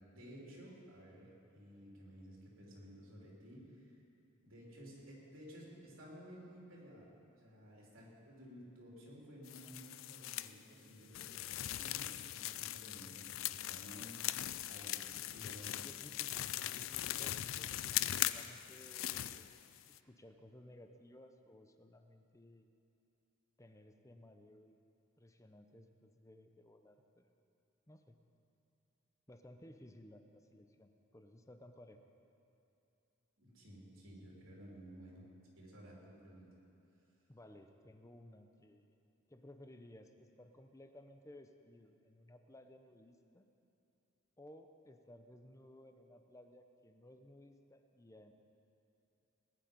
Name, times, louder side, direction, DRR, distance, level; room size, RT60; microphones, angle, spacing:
voice 1, 0.1-3.9 4.4-15.0 15.3-15.9 33.4-35.2 35.6-36.5, equal, 85° right, -4 dB, 3.5 m, -55 dB
sound 1, 9.5-10.5 11.1-20.0, left 13 dB, 80° left, 0.4 m, -40 dB
voice 2, 15.8-22.7 23.6-24.8 25.2-27.3 27.9-28.2 29.3-32.0 37.3-38.9 39.3-43.5 44.4-48.3, left 1 dB, 15° left, 6 dB, 0.7 m, -58 dB
19.0 x 10.5 x 5.3 m, 2.8 s
head